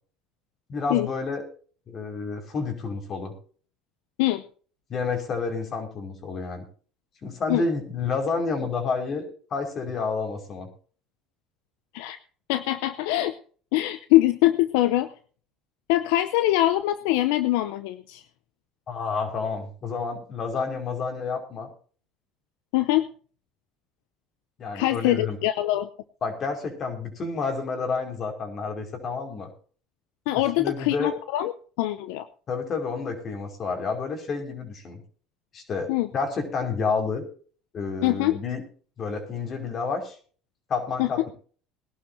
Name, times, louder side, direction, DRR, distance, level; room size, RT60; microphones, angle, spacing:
voice 1, 0.7-1.4 1.9-3.3 4.9-6.7 7.2-10.7 18.9-21.7 24.6-25.4 26.2-29.5 30.6-31.1 32.5-35.0 35.5-37.2 37.7-38.6 39.0-40.2 40.7-41.3, left 4 dB, 45° left, 5 dB, 5.3 m, -29 dB
voice 2, 12.5-13.3 13.7-15.1 15.9-18.2 22.7-23.1 24.7-25.9 30.3-31.5 31.8-32.3 35.9-36.1 38.0-38.4 41.0-41.1, left 15 dB, 80° left, 12 dB, 0.7 m, -23 dB
21.0 x 12.0 x 2.8 m, 0.42 s
supercardioid pair, 95°, 0 cm